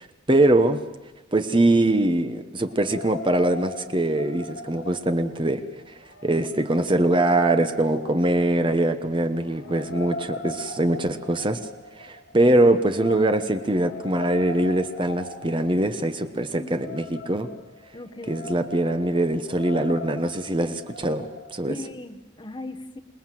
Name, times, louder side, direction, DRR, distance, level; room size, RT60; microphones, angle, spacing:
voice 1, 0.3-0.8 1.3-5.6 6.2-11.6 12.0-17.5 18.3-21.3 21.5-21.7, right 1 dB, 25° right, 9 dB, 1.1 m, -22 dB
sound 1, 2.6-21.6, left 2 dB, 65° left, 2.2 m, -40 dB
voice 2, 16.6-17.0 17.9-18.5 21.7-23.0, left 1 dB, 25° left, 7 dB, 1.1 m, -38 dB
27.5 x 19.5 x 7.6 m, 1.0 s
head